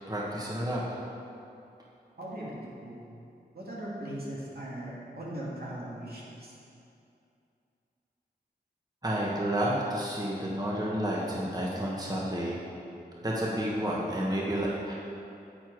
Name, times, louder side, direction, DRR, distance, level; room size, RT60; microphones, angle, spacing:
voice 1, 0.1-1.0 9.0-12.6 13.2-14.9, equal, 20° right, -5 dB, 1.6 m, -30 dB
voice 2, 2.2-3.0 3.5-6.5, right 1 dB, 65° right, -6 dB, 2.5 m, -39 dB
10.0 x 8.0 x 4.8 m, 2.6 s
wide cardioid pair, 55°, 17 cm